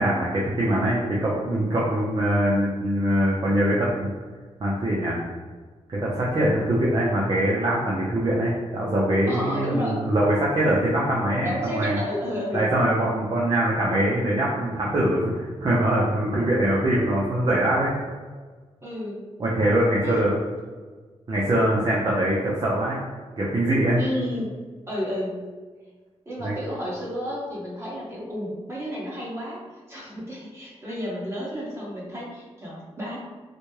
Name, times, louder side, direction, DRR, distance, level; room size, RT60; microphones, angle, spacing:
voice 1, 0.0-4.1 4.6-5.2 5.9-12.0 12.5-17.9 19.4-20.3 21.3-23.0 23.4-24.0 26.4-26.6, right 1 dB, 40° right, -6 dB, 0.7 m, -23 dB
voice 2, 9.3-10.0 11.4-12.7 18.8-19.2 20.0-20.3 24.0-24.5 24.9-25.4 26.2-29.6 29.9-33.2, equal, 25° right, -6 dB, 1.4 m, -31 dB
4.1 x 2.2 x 3.2 m, 1.4 s
cardioid pair, 95°, 11 cm